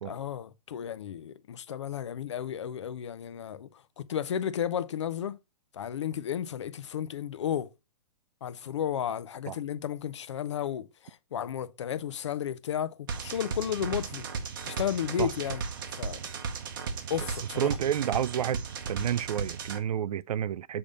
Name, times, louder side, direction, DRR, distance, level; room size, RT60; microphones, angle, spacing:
voice 1, 0.0-5.4 5.7-7.7 8.4-14.3 14.6-15.6 16.0-16.2 17.1-17.7, left 9 dB, 50° left, 0.5 m, -33 dB
sound 1, 13.1-19.8, right 5 dB, 35° right, 0.7 m, -36 dB
voice 2, 17.6-18.6 18.9-20.8, right 10 dB, 80° right, 0.4 m, -30 dB
6.9 x 3.5 x 5.1 m
hypercardioid pair, 180°, 19 cm